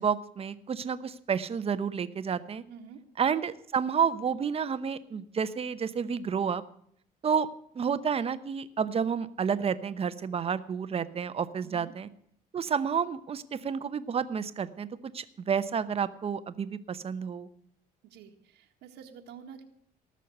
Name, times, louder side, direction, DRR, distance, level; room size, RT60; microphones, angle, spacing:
voice 1, 0.0-2.6 3.2-6.6 7.2-7.5 7.8-12.1 12.5-14.9 15.1-17.5, right 7 dB, 35° right, 12 dB, 0.9 m, -30 dB
voice 2, 2.7-3.0 11.6-11.9 18.0-19.6, right 7 dB, 85° right, 3 dB, 1.7 m, -48 dB
18.5 x 6.5 x 7.9 m, 0.66 s
cardioid pair, 110°, 17 cm